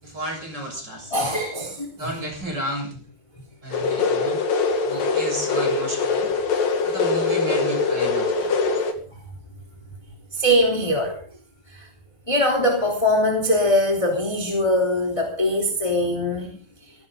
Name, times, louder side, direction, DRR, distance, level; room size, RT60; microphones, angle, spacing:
voice 1, 0.0-1.2 2.0-2.9 3.6-4.4 4.8-6.3 6.8-8.6, equal, 25° right, 3 dB, 7.5 m, -32 dB
voice 2, 1.1-2.1 8.4-8.5 10.3-11.2 11.7-11.9 12.3-16.5, left 1 dB, 10° left, 1 dB, 3.2 m, -22 dB
sound 1, 3.7-8.9, left 4 dB, 65° left, 4.0 m, -23 dB
20.0 x 18.0 x 3.9 m, 0.42 s
omnidirectional pair, 4.4 m